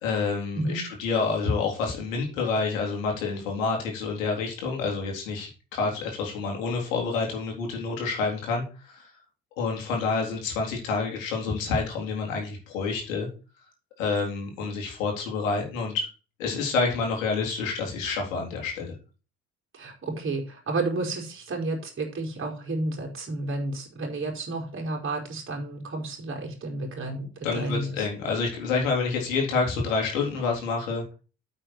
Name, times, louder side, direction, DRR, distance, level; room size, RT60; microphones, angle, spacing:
voice 1, 0.0-9.0 9.6-13.3 14.0-16.1 16.4-18.9 27.4-31.1, left 4 dB, 65° left, 1 dB, 3.9 m, -28 dB
voice 2, 19.7-28.0, right 2 dB, 30° right, 1 dB, 4.5 m, -31 dB
9.0 x 7.4 x 4.6 m, 0.34 s
figure-of-eight pair, 55°, 41 cm